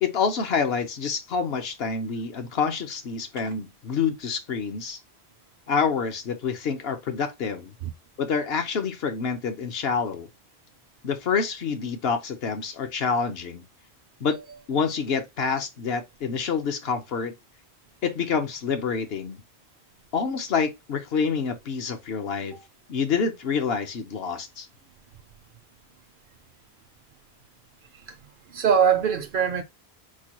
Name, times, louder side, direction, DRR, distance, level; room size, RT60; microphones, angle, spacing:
voice 1, 0.0-5.0 5.7-7.7 8.2-10.3 11.0-13.6 14.2-14.4 14.7-17.3 18.0-19.4 20.1-22.6 22.9-24.7, left 5 dB, 70° left, 1.0 m, -27 dB
voice 2, 22.3-22.6 27.9-28.2 28.5-29.6, right 7 dB, 60° right, 0.6 m, -23 dB
4.5 x 2.2 x 2.9 m
omnidirectional pair, 1.1 m